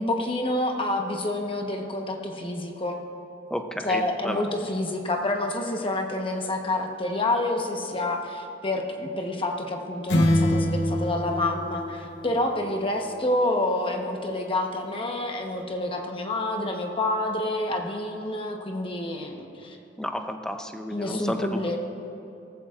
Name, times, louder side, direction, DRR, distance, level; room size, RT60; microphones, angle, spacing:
voice 1, 0.0-3.0 3.8-19.8 20.9-21.8, left 1 dB, 30° left, 2 dB, 1.1 m, -28 dB
voice 2, 3.5-4.5 20.0-21.8, equal, 5° left, 5 dB, 0.6 m, -32 dB
sound 1, 10.1-12.7, left 1 dB, 65° left, 1.0 m, -25 dB
17.5 x 14.5 x 2.5 m, 2.8 s
head